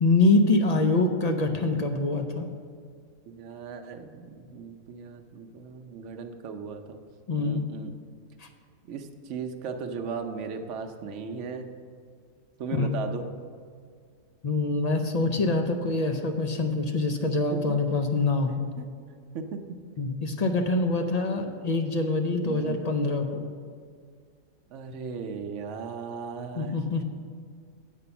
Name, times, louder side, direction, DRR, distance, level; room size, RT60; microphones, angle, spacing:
voice 1, 0.0-2.5 7.3-7.6 8.4-8.5 12.7-12.9 14.4-18.7 20.0-23.4 26.6-27.0, left 3 dB, 55° left, 5 dB, 0.4 m, -25 dB
voice 2, 3.3-7.0 7.4-7.9 8.9-11.7 12.6-13.3 17.5-17.8 18.8-18.9 19.3-19.8 22.4-22.8 24.7-26.8, right 5 dB, 65° right, 5 dB, 1.0 m, -37 dB
8.3 x 5.3 x 6.9 m, 2.1 s
omnidirectional pair, 1.4 m